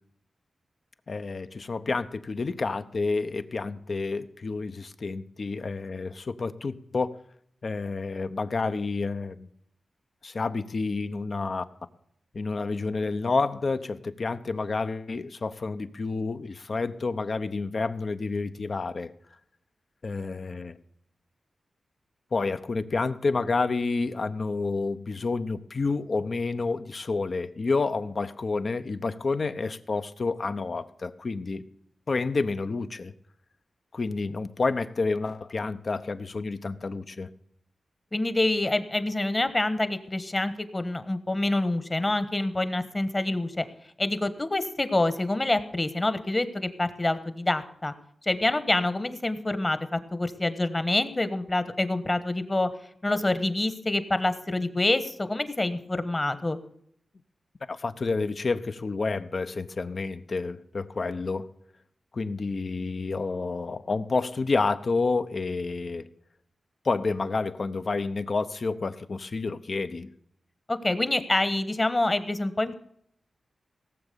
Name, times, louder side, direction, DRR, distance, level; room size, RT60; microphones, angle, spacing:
voice 1, 1.1-7.2 7.6-9.5 10.2-11.6 12.3-19.1 20.0-20.7 22.3-31.6 32.1-33.1 33.9-37.3 57.7-61.5 62.1-66.1 66.8-70.1, left 3 dB, 55° left, 10 dB, 0.9 m, -29 dB
voice 2, 38.1-43.6 44.0-47.9 48.2-52.7 53.0-56.6 70.7-72.7, left 2 dB, 30° left, 12 dB, 1.3 m, -26 dB
17.5 x 7.3 x 6.9 m, 0.69 s
cardioid pair, 55°, 0 cm